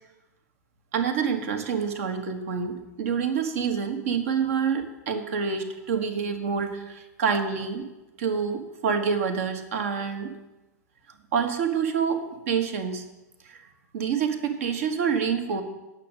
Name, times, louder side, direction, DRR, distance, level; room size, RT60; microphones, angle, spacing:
voice 1, 0.9-7.8 8.2-10.3 11.3-13.0 13.4-13.6 13.9-15.6, right 6 dB, 55° right, 6 dB, 1.3 m, -27 dB
8.2 x 6.3 x 8.1 m, 1.0 s
figure-of-eight pair, 100°, 9 cm